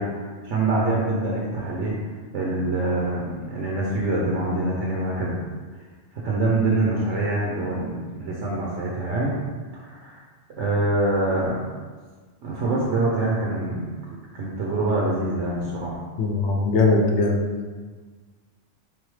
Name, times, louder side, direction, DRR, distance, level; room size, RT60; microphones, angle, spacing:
voice 1, 0.0-2.0 2.3-5.4 6.1-9.3 9.8-10.2 10.6-11.7 12.4-14.0 14.3-16.0, right 2 dB, 80° right, -4 dB, 1.0 m, -25 dB
voice 2, 16.2-17.4, left 3 dB, 70° left, 1 dB, 0.9 m, -20 dB
3.8 x 3.4 x 3.1 m, 1.5 s
omnidirectional pair, 1.2 m